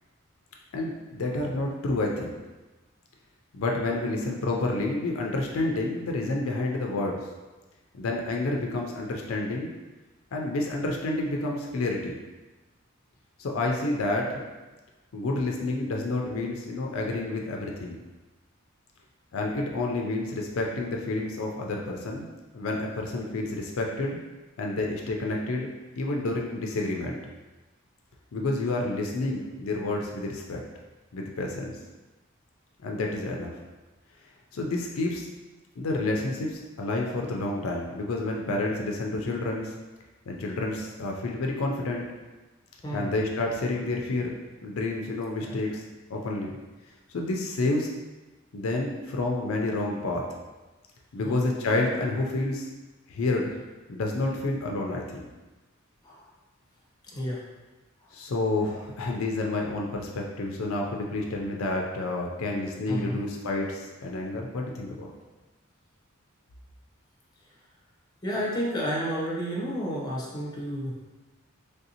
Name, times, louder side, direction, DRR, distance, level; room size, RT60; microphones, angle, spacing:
voice 1, 0.7-2.4 3.5-7.3 7.9-9.7 10.3-12.2 13.4-14.4 15.1-18.0 19.3-22.3 22.5-24.2 24.6-25.7 26.0-27.2 28.3-30.6 31.1-31.7 32.8-33.5 34.5-35.3 35.8-39.7 40.3-42.1 42.9-44.3 44.6-45.8 46.1-46.5 47.1-47.9 48.5-50.3 51.1-52.7 53.1-53.5 53.9-55.3 58.1-65.1, left 2 dB, 70° left, 0 dB, 0.4 m, -29 dB
voice 2, 57.1-57.4 62.9-63.2 68.2-71.1, equal, 20° left, -4 dB, 0.6 m, -31 dB
3.3 x 2.6 x 2.7 m, 1.2 s
head